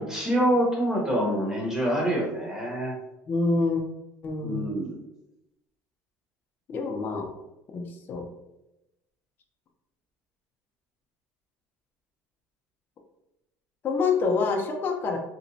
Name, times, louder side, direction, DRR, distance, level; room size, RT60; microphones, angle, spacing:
voice 1, 0.0-2.9 4.4-5.0, right 1 dB, 10° right, -3 dB, 0.8 m, -26 dB
voice 2, 3.3-3.8 4.2-4.7 6.7-7.3 7.7-8.3 13.8-15.2, left 4 dB, 30° left, 1 dB, 0.4 m, -26 dB
2.9 x 2.1 x 2.6 m, 0.92 s
cardioid pair, 145°, 6 cm